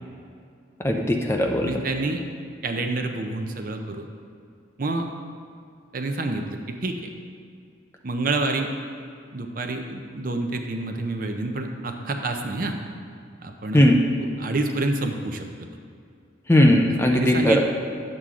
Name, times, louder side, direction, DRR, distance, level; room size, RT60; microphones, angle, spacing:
voice 1, 0.8-1.7 13.7-14.0 16.5-17.6, left 1 dB, 15° left, 1 dB, 0.5 m, -18 dB
voice 2, 1.6-2.2 2.6-4.0 4.8-5.1 5.9-7.1 8.0-8.7 9.3-12.8 13.4-13.8 14.2-15.5 17.0-17.6, right 2 dB, 45° right, 4 dB, 0.6 m, -28 dB
9.6 x 7.5 x 3.7 m, 2.3 s
head